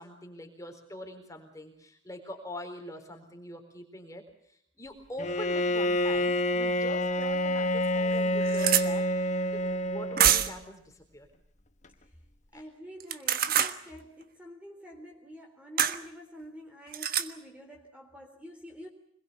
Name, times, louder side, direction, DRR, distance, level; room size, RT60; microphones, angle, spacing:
voice 1, 0.0-9.1 9.5-9.6 9.9-11.3 12.5-12.6, left 1 dB, 15° left, 4 dB, 4.2 m, -43 dB
Bowed string instrument, 5.2-10.6, left 1 dB, 35° left, 1.4 m, -28 dB
sound 1, 7.2-7.3 7.8-7.9 8.1-8.9 10.2-10.6 13.0-13.8 15.8-16.0 16.9-17.3, right 9 dB, 45° right, 1.4 m, -25 dB
voice 2, 12.5-18.9, equal, 5° right, 2 dB, 3.7 m, -47 dB
26.0 x 21.5 x 7.0 m, 0.70 s
head